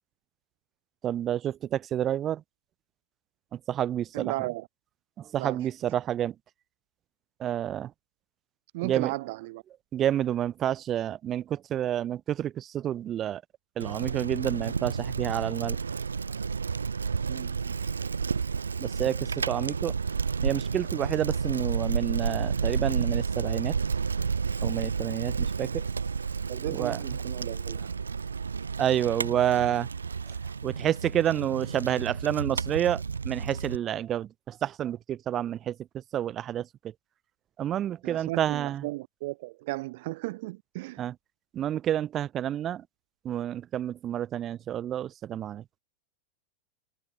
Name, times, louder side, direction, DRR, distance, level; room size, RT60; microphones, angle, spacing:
voice 1, 1.0-2.4 3.5-4.3 5.2-6.3 7.4-7.9 8.8-9.1 9.9-13.4 13.8-15.8 18.8-20.0 20.4-23.8 24.6-25.9 26.7-27.0 28.8-29.9 30.6-36.7 37.6-38.9 41.0-41.1 41.5-42.8 43.2-45.6, right 11 dB, 30° right, 3.7 m, -29 dB
voice 2, 4.1-4.7 5.4-5.7 8.7-9.6 17.3-17.7 26.5-27.9 38.0-41.0, right 21 dB, 50° right, 2.7 m, -35 dB
Bicycle, 13.8-33.8, right 5 dB, 75° right, 1.8 m, -31 dB
figure-of-eight pair, 90°, 0 cm